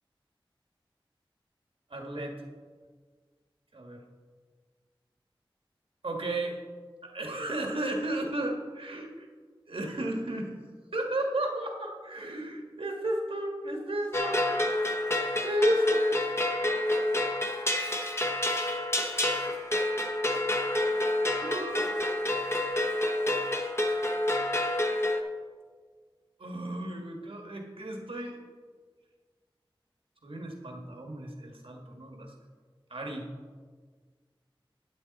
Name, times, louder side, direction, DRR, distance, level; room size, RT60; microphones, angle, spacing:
voice 1, 1.9-2.3 3.7-4.0 6.0-6.6 7.0-9.3 9.7-10.5 10.9-14.4 15.0-16.4 17.8-18.3 21.4-21.9 26.4-28.4 30.2-32.3 32.9-33.2, right 1 dB, 80° right, 1 dB, 1.7 m, -33 dB
sound 1, 14.1-25.2, left 1 dB, 30° left, 1.1 m, -28 dB
11.5 x 8.5 x 4.1 m, 1.5 s
wide cardioid pair, 50°, 9 cm